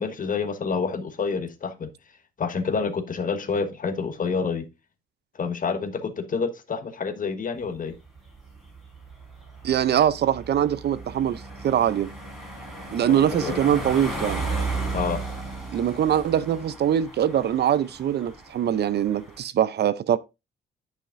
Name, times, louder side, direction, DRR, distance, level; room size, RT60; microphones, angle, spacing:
voice 1, 0.0-1.9 2.4-4.7 5.3-7.9 13.1-13.6 14.9-15.2, left 5 dB, 45° left, 1.4 m, -28 dB
sound 1, 7.7-19.4, right 3 dB, ahead, 4.0 m, -35 dB
voice 2, 9.6-12.1 12.9-14.4 15.7-20.2, right 10 dB, 55° right, 0.6 m, -23 dB
9.8 x 5.8 x 2.6 m
cardioid pair, 90°, 20 cm